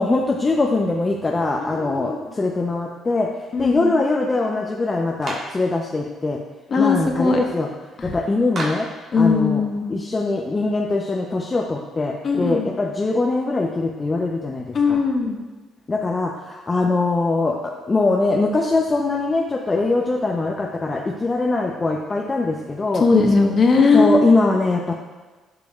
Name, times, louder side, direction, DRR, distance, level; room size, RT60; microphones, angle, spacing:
voice 1, 0.0-3.3 3.6-6.4 6.8-7.7 8.0-8.9 9.2-9.6 9.9-15.0 15.9-23.1 23.9-24.9, left 3 dB, 30° left, 0 dB, 0.6 m, -22 dB
voice 2, 1.7-2.2 3.5-3.9 6.7-7.4 9.1-9.9 12.2-12.7 14.7-15.4 22.9-24.2, left 4 dB, 50° left, 1 dB, 1.3 m, -18 dB
Clapping, 5.2-5.6 8.5-9.0, right 2 dB, 55° right, 1.6 m, -30 dB
11.5 x 5.1 x 2.4 m, 1.3 s
supercardioid pair, 65°, 0 cm